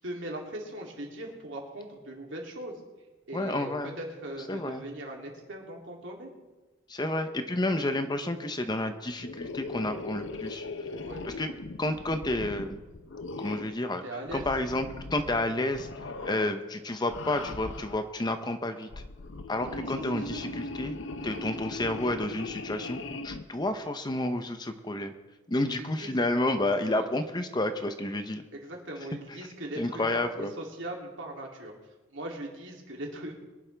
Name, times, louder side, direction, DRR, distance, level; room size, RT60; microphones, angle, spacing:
voice 1, 0.0-2.8 3.3-3.7 4.0-6.3 11.0-11.6 14.0-14.4 16.2-16.3 19.6-20.5 21.2-21.4 25.8-26.2 26.8-27.1 28.5-31.7 32.1-33.3, right 1 dB, 70° right, -1 dB, 2.9 m, -40 dB
voice 2, 3.3-3.9 4.5-4.8 6.9-10.6 11.2-11.5 11.8-12.8 13.4-14.0 14.3-15.9 16.2-18.9 19.5-25.1 25.5-28.4 29.8-30.5, left 1 dB, 20° left, 8 dB, 0.7 m, -30 dB
sound 1, 9.2-13.8 14.3-15.4 15.7-16.6 17.0-18.1 18.8-23.4, left 2 dB, 70° left, 0.7 m, -39 dB
23.0 x 11.0 x 3.4 m, 1.2 s
head